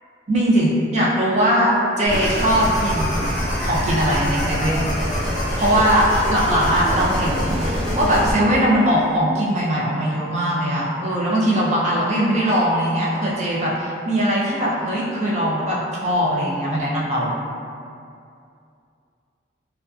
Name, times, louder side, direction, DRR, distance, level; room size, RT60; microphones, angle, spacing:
voice 1, 0.3-3.2 3.6-4.9 5.6-17.3, equal, 40° right, -6 dB, 0.4 m, -20 dB
sound 1, 2.1-8.3, equal, ahead, 0.7 m, -24 dB
2.5 x 2.3 x 2.2 m, 2.5 s
head